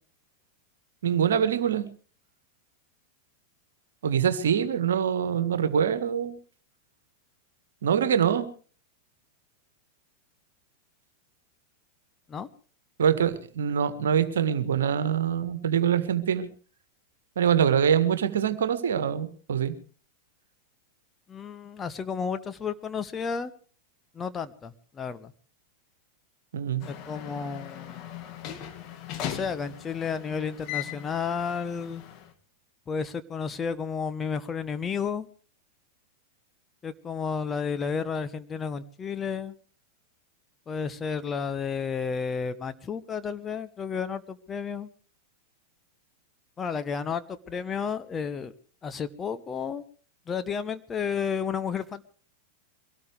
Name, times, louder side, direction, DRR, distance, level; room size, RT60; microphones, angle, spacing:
voice 1, 1.0-1.9 4.0-6.3 7.8-8.5 13.0-16.5 17.4-19.7 26.5-26.8, right 8 dB, 65° right, 12 dB, 1.7 m, -24 dB
voice 2, 21.3-23.5 24.1-25.3 26.9-28.1 29.2-32.0 32.9-35.3 36.8-39.5 40.7-44.9 46.6-48.5 48.8-49.8 50.3-52.0, left 6 dB, 20° left, 10 dB, 1.2 m, -32 dB
sound 1, 26.8-32.3, left 11 dB, 40° left, 2.3 m, -39 dB
23.5 x 18.0 x 3.4 m, 0.41 s
figure-of-eight pair, 90°, 0 cm